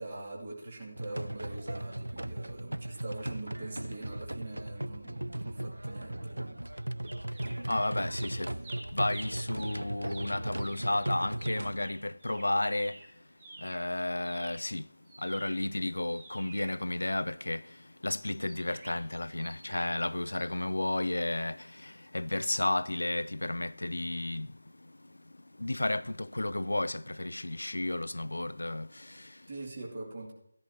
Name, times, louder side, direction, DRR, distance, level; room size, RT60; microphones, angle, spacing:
voice 1, 0.0-6.7 29.5-30.3, right 2 dB, 45° right, 2.4 m, -43 dB
sound 1, 1.0-11.8, right 1 dB, 80° right, 0.3 m, -37 dB
sound 2, 7.0-7.9 8.1-13.9 14.2-17.5 18.2-20.0 20.3-20.5, right 2 dB, 20° right, 2.1 m, -50 dB
voice 2, 7.7-8.5 8.9-13.0 13.6-14.9 15.2-24.9 25.6-29.4, left 1 dB, 70° left, 0.3 m, -33 dB
14.0 x 10.5 x 2.9 m
figure-of-eight pair, 160°, 0 cm